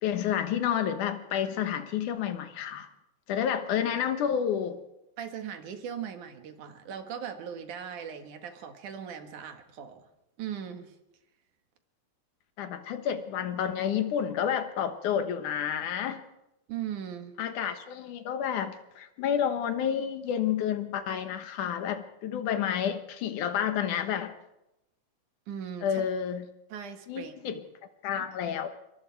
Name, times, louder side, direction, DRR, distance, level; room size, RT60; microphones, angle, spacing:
voice 1, 0.0-2.9 3.3-4.8 12.6-16.2 17.4-24.3 25.8-26.5 27.1-27.6 28.0-28.7, left 9 dB, 75° left, 9 dB, 2.7 m, -30 dB
voice 2, 5.2-10.1 10.4-11.0 16.7-17.4 25.5-26.0 26.7-27.6 28.2-28.3, right 8 dB, 70° right, 7 dB, 3.1 m, -39 dB
26.5 x 23.0 x 4.6 m, 0.92 s
omnidirectional pair, 3.7 m